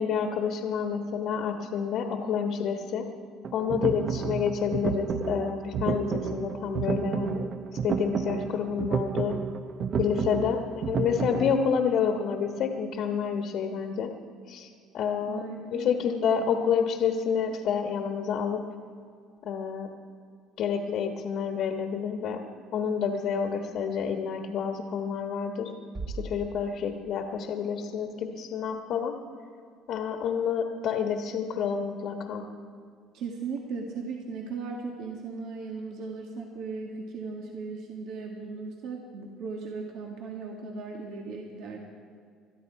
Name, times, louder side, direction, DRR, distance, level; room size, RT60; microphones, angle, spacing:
voice 1, 0.0-3.0 3.5-7.5 7.8-9.4 10.0-10.6 10.9-14.1 14.5-15.4 15.7-18.6 19.4-19.9 20.6-22.4 22.7-25.7 26.1-29.1 29.9-32.5, left 7 dB, 55° left, 3 dB, 1.3 m, -29 dB
sound 1, 3.4-11.6, right 6 dB, 45° right, 0.8 m, -31 dB
voice 2, 15.3-15.9 16.2-16.5 33.1-41.8, right 4 dB, 65° right, 0 dB, 1.8 m, -37 dB
sound 2, 25.9-27.9, right 3 dB, 25° right, 1.6 m, -40 dB
22.0 x 13.0 x 4.7 m, 2.2 s
cardioid pair, 120°, 0 cm